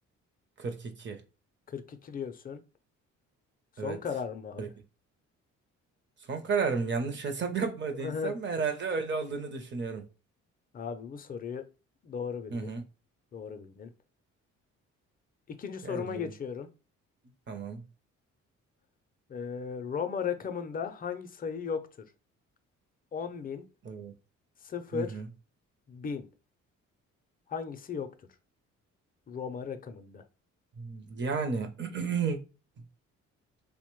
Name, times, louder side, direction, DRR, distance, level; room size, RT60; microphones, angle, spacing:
voice 1, 0.6-1.2 3.8-4.0 4.6-4.7 6.3-10.0 12.5-12.8 15.8-16.3 17.5-17.8 23.8-24.1 24.9-25.3 30.8-32.4, right 5 dB, 40° right, 0.6 m, -32 dB
voice 2, 1.7-2.6 3.8-4.7 7.9-8.3 10.7-11.6 12.0-12.7 13.3-13.9 15.5-16.7 19.3-22.1 23.1-23.6 24.6-25.2 25.9-26.3 27.5-28.1 29.3-30.2, left 6 dB, 30° left, 0.4 m, -36 dB
2.9 x 2.1 x 3.0 m
cardioid pair, 90°, 30 cm